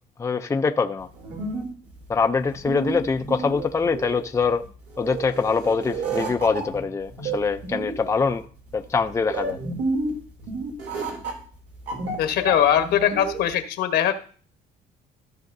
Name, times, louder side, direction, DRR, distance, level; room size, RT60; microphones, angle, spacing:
voice 1, 0.2-1.1 2.1-4.6 5.0-8.4 8.7-9.6, left 5 dB, 15° left, 0.5 m, -24 dB
sound 1, 1.0-13.5, right 3 dB, 85° right, 2.8 m, -31 dB
voice 2, 12.2-14.1, left 10 dB, 75° left, 1.2 m, -21 dB
14.5 x 6.4 x 2.6 m
cardioid pair, 110°, 17 cm